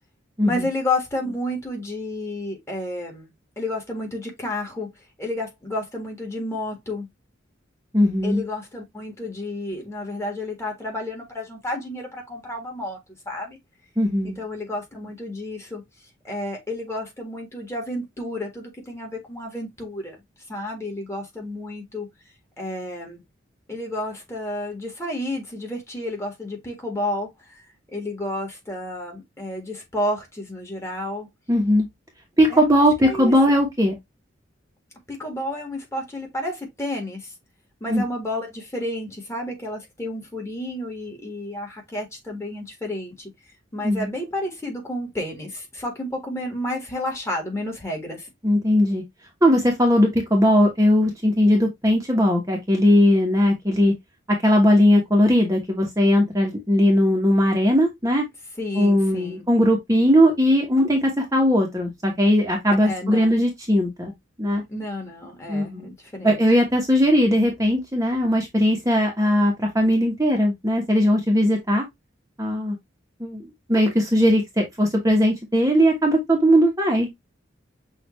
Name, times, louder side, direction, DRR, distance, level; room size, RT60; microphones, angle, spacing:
voice 1, 0.4-4.9 5.2-7.1 8.2-13.0 13.2-13.6 14.2-15.8 16.2-20.2 20.5-22.1 22.6-23.2 23.7-27.6 27.9-31.3 32.5-33.6 35.1-37.3 37.8-43.3 43.7-48.3 58.6-59.4 62.8-63.3 64.7-66.4, left 1 dB, 15° left, 1.7 m, -31 dB
voice 2, 7.9-8.4 14.0-14.4 31.5-31.9 32.4-33.9 37.9-38.0 43.8-44.1 48.4-49.0 49.4-53.9 54.4-58.2 58.7-64.1 64.4-64.6 65.5-65.9 66.2-71.9 72.4-72.8 73.2-77.1, equal, 15° right, 1.0 m, -19 dB
6.2 x 2.6 x 3.1 m
head